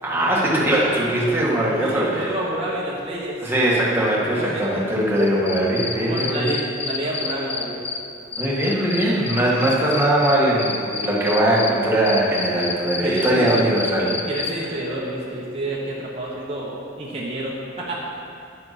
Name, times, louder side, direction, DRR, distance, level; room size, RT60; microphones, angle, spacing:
voice 1, 0.0-2.3 3.4-6.6 8.4-14.2, right 1 dB, 10° right, -6 dB, 1.9 m, -20 dB
voice 2, 1.8-3.4 4.1-4.8 5.1-5.4 6.0-7.8 13.0-13.7 14.3-18.0, right 1 dB, 30° right, -6 dB, 1.2 m, -29 dB
Cricket, 5.2-8.0 8.3-11.7 12.1-14.5, left 5 dB, 30° left, 0.7 m, -28 dB
10.5 x 9.6 x 4.3 m, 2.5 s
head